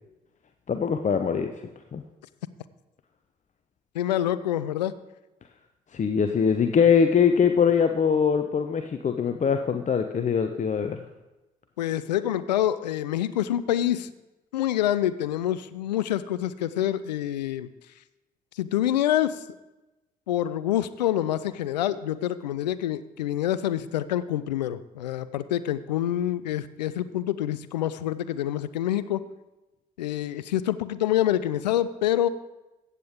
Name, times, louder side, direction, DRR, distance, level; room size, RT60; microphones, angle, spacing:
voice 1, 0.7-1.5 1.9-2.0 5.9-11.0, left 6 dB, 35° left, 7 dB, 0.7 m, -22 dB
voice 2, 3.9-5.0 11.8-14.1 14.5-17.7 18.6-19.4 20.3-29.2 30.0-32.3, left 12 dB, 80° left, 15 dB, 0.4 m, -26 dB
15.0 x 8.2 x 3.6 m, 1.0 s
figure-of-eight pair, 45°, 21 cm